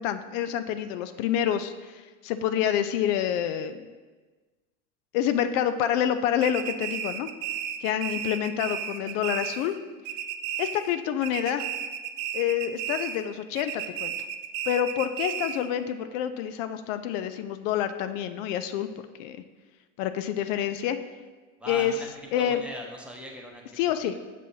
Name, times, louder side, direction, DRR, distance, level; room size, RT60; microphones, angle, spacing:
voice 1, 0.0-3.9 5.1-7.3 7.8-9.8 10.6-11.7 12.3-14.1 14.7-18.9 19.2-19.4 20.0-21.0 21.7-21.9 22.3-22.6 23.8-24.1, left 10 dB, 70° left, 10 dB, 0.5 m, -27 dB
sound 1, 6.4-9.8 10.0-11.0 11.2-13.3 13.6-15.7, right 9 dB, 55° right, 0.5 m, -33 dB
voice 2, 21.6-24.2, equal, 5° right, -1 dB, 0.8 m, -41 dB
6.9 x 6.2 x 2.8 m, 1.3 s
supercardioid pair, 115°, 39 cm